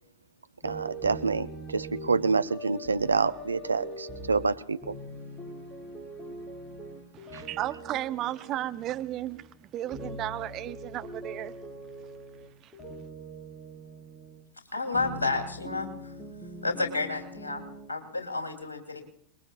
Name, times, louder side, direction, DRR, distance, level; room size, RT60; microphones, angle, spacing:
sound 1, 0.6-9.6 9.8-14.4 14.9-17.9, right 1 dB, 10° left, 5.2 m, -42 dB
voice 1, 0.6-1.5 1.7-5.0 7.3-7.4, right 4 dB, 75° right, 0.7 m, -27 dB
voice 2, 7.1-11.5 12.6-12.7, right 13 dB, 35° right, 0.9 m, -34 dB
voice 3, 14.7-16.1 16.6-19.0, left 3 dB, 75° left, 3.2 m, -31 dB
27.5 x 21.5 x 2.5 m
figure-of-eight pair, 90°, 0 cm